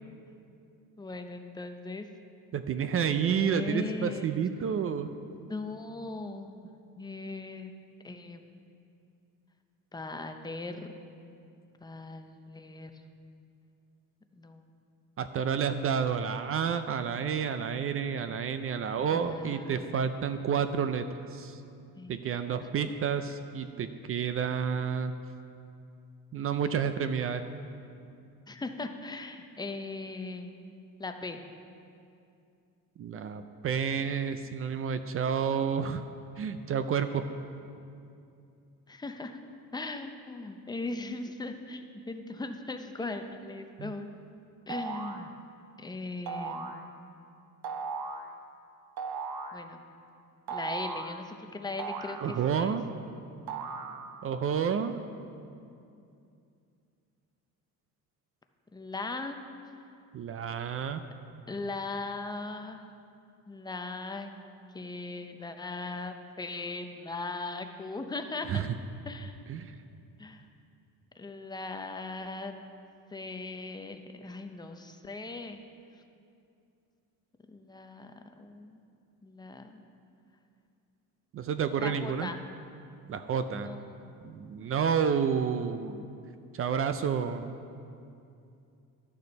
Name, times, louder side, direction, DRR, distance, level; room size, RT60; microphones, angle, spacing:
voice 1, 1.0-2.1 3.0-4.3 5.3-6.7 7.0-7.7 8.0-8.4 9.9-11.0 11.8-12.9 14.3-14.7 19.1-19.9 22.0-22.2 22.7-22.9 28.5-30.5 31.0-31.4 38.9-39.4 39.7-44.1 44.7-45.3 45.8-46.8 49.5-49.8 50.5-52.8 58.7-59.4 61.5-63.0 63.5-64.4 64.7-68.6 69.0-69.4 70.2-70.5 71.1-72.5 73.1-75.6 77.5-78.8 79.2-79.8 81.8-82.4 83.5-84.1, left 3 dB, 10° left, 6 dB, 0.5 m, -39 dB
voice 2, 2.5-5.1 15.2-21.1 21.3-21.6 22.1-25.1 26.3-27.4 33.0-36.0 36.4-37.2 43.8-43.9 52.2-52.9 54.2-55.0 60.1-61.0 68.5-68.7 69.5-69.8 81.3-82.3 83.1-83.7 84.2-86.0 86.5-87.5, right 7 dB, 40° right, 10 dB, 0.4 m, -30 dB
sound 1, 44.7-45.2 46.3-46.8 47.6-48.3 49.0-49.6 50.5-51.2 51.8-52.7 53.5-54.3, right 4 dB, 75° right, 0.8 m, -37 dB
12.0 x 6.8 x 5.2 m, 2.6 s
cardioid pair, 135°, 35 cm